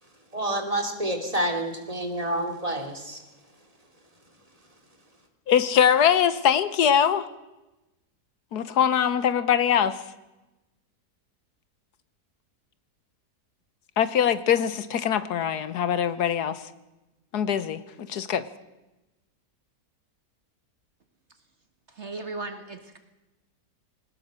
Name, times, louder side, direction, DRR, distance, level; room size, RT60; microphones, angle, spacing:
voice 1, 0.3-3.2, right 1 dB, 20° right, 3 dB, 2.9 m, -28 dB
voice 2, 5.5-7.3 8.5-10.0 14.0-16.6 17.3-17.8 18.1-18.4, left 8 dB, 75° left, 13 dB, 1.5 m, -22 dB
voice 3, 21.9-23.0, right 3 dB, 45° right, 7 dB, 1.7 m, -36 dB
21.5 x 19.0 x 6.4 m, 1.0 s
omnidirectional pair, 1.7 m